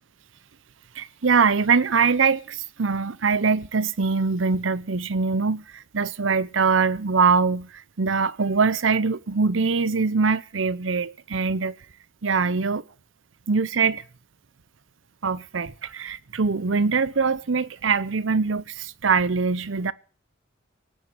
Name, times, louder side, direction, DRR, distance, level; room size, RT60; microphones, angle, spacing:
voice 1, 0.9-11.7 12.2-12.8 13.5-14.0 15.2-19.9, right 5 dB, 85° right, 0.8 m, -23 dB
18.5 x 8.1 x 9.7 m
head